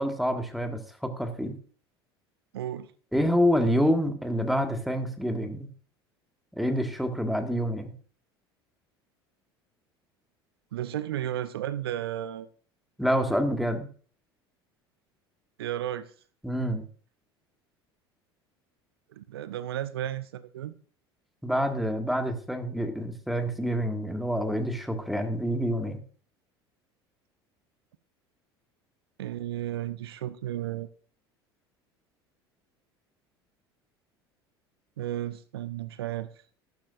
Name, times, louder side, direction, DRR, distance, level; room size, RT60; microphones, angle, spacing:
voice 1, 0.0-1.6 3.1-5.7 6.5-7.9 13.0-13.9 16.4-16.8 21.4-26.0, equal, ahead, 1.8 m, -27 dB
voice 2, 2.5-2.9 10.7-12.5 15.6-16.1 19.1-20.7 29.2-30.9 35.0-36.3, right 12 dB, 70° right, 0.6 m, -33 dB
13.5 x 12.0 x 2.5 m
figure-of-eight pair, 70°, 13 cm